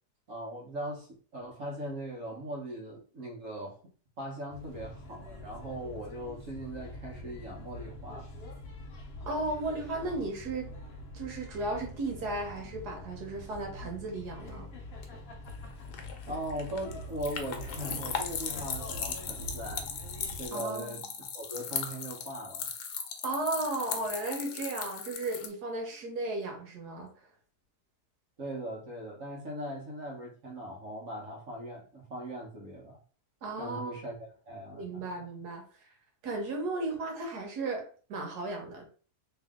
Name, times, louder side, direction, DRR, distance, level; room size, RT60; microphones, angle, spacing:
voice 1, 0.3-3.8 4.2-8.3 16.3-19.9 20.4-22.7 28.4-33.0 33.6-35.2, right 1 dB, 55° right, 1.4 m, -40 dB
sound 1, 4.5-20.5, left 1 dB, 50° left, 0.8 m, -44 dB
voice 2, 9.3-10.7 11.1-14.7 20.5-21.1 23.2-27.3 33.4-34.0 34.7-35.9 36.2-38.9, right 2 dB, 80° right, 1.6 m, -35 dB
sound 2, 15.5-25.5, left 7 dB, 85° left, 1.2 m, -38 dB
3.1 x 2.8 x 3.6 m
omnidirectional pair, 1.7 m